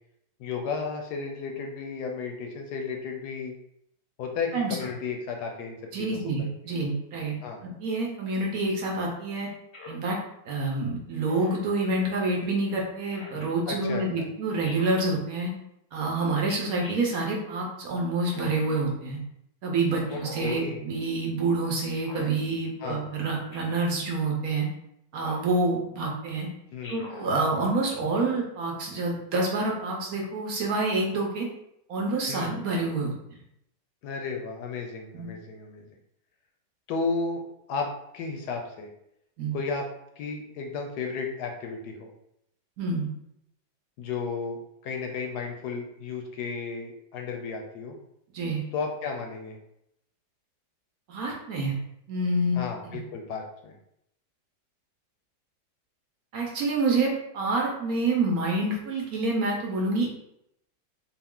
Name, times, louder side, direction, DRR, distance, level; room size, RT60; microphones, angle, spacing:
voice 1, 0.4-3.5 4.2-6.8 7.4-7.6 13.7-14.3 20.1-20.9 22.8-23.0 26.7-27.0 32.3-32.5 34.0-35.9 36.9-37.4 37.7-38.9 39.5-39.9 40.2-42.1 44.0-48.0 48.7-49.6 52.5-53.7, left 4 dB, 75° left, 2 dB, 1.1 m, -33 dB
voice 2, 5.9-7.3 7.8-9.5 9.9-10.2 10.5-15.5 15.9-19.2 19.6-24.7 25.1-26.5 26.9-31.5 31.9-33.1 35.1-35.3 39.4-39.5 42.8-43.1 48.3-48.6 51.1-51.8 52.1-52.6 56.3-60.1, right 2 dB, 65° right, -1 dB, 1.1 m, -27 dB
Speech synthesizer, 9.7-10.1 11.2-11.7 13.1-13.5 14.6-15.1 16.4-17.0 18.2-18.8 20.0-20.6 21.9-22.3 23.5-23.8 25.2-25.5 26.8-27.3, left 2 dB, 55° left, 0.7 m, -43 dB
3.8 x 2.4 x 3.6 m, 0.78 s
omnidirectional pair, 1.9 m